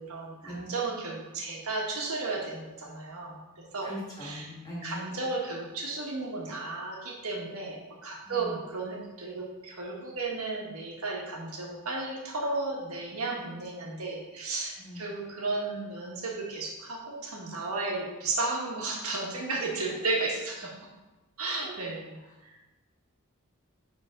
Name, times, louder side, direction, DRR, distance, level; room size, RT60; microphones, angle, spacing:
voice 1, 0.0-3.9 4.2-4.5 4.8-20.7 21.4-22.2 22.4-22.6, right 3 dB, 85° right, -1 dB, 1.5 m, -34 dB
voice 2, 3.8-5.0 8.2-8.5 14.8-15.0 21.4-21.7, left 1 dB, 20° left, -5 dB, 2.2 m, -41 dB
9.8 x 3.7 x 3.8 m, 1.1 s
head